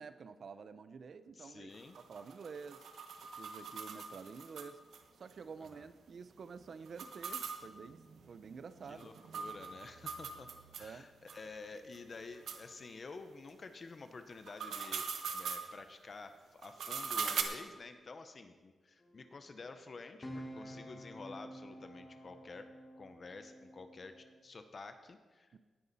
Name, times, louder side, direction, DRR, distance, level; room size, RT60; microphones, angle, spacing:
voice 1, 0.0-1.7 2.0-2.8 3.4-4.8 5.1-9.1 10.8-11.1 25.5-25.6, right 5 dB, 50° right, 12 dB, 0.6 m, -49 dB
voice 2, 1.3-2.0 5.6-5.9 8.9-10.5 10.8-15.1 15.3-22.7 23.0-25.5, left 3 dB, 35° left, 8 dB, 0.8 m, -50 dB
sound 1, 1.7-5.0 5.3-5.4 5.7-5.8 6.9-10.9 11.3-11.4 11.9-12.0 12.5-12.6 14.3-15.7 16.6-17.4, right 6 dB, 90° right, 1.1 m, -41 dB
sound 2, 19.0-24.4, equal, 20° left, 1.6 m, -50 dB
18.0 x 9.6 x 4.1 m, 1.4 s
wide cardioid pair, 170°, 0 cm